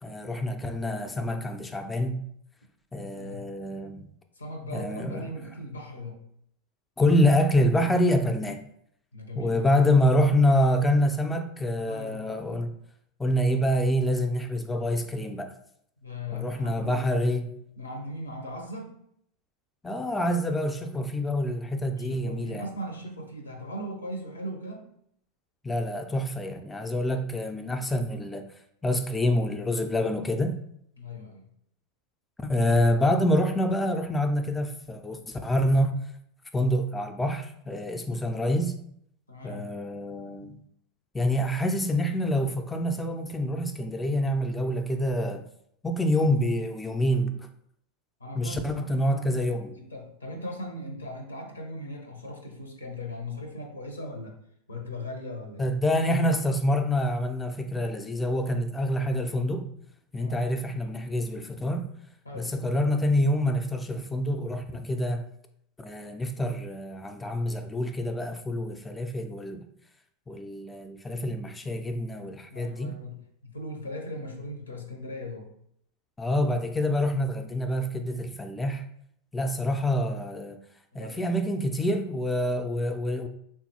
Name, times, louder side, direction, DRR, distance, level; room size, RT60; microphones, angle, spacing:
voice 1, 0.0-2.2 2.9-4.0 4.7-5.3 7.0-8.7 9.4-12.7 13.2-15.5 16.3-17.5 19.8-22.7 25.6-28.5 28.8-30.6 32.4-36.0 36.5-38.8 39.4-40.6 41.1-45.5 45.8-47.4 48.4-49.8 55.6-59.7 60.1-61.9 62.3-65.2 65.8-69.7 70.3-72.9 76.2-78.8 79.3-80.6 80.9-83.3, left 1 dB, 15° left, 0.3 m, -26 dB
voice 2, 3.0-3.5 4.4-6.2 9.1-10.2 11.8-12.3 16.0-17.2 17.8-18.9 21.9-24.9 31.0-31.4 39.3-39.8 48.2-49.2 49.7-54.3 54.7-55.7 60.2-60.5 62.2-62.6 72.2-75.5 79.6-79.8 80.9-81.3, left 1 dB, 90° left, 0.6 m, -39 dB
3.6 x 2.3 x 2.8 m
figure-of-eight pair, 85°, 0 cm